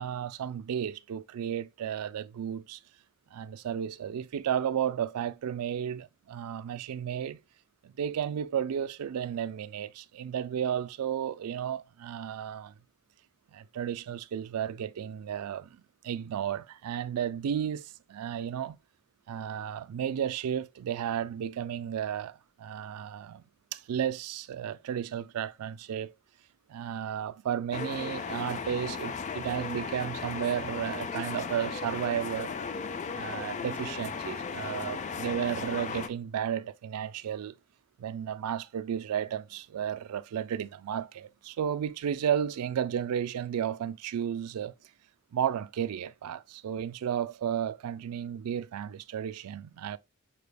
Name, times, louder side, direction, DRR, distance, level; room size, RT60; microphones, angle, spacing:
voice 1, 0.0-2.8 3.3-7.4 7.8-12.7 13.5-18.8 19.3-23.4 23.7-26.1 26.7-32.5 33.1-37.5 38.0-44.7 45.3-50.0, right 9 dB, 90° right, 0.3 m, -33 dB
sound 1, 27.7-36.1, left 5 dB, 35° left, 0.3 m, -36 dB
5.7 x 3.3 x 2.2 m
head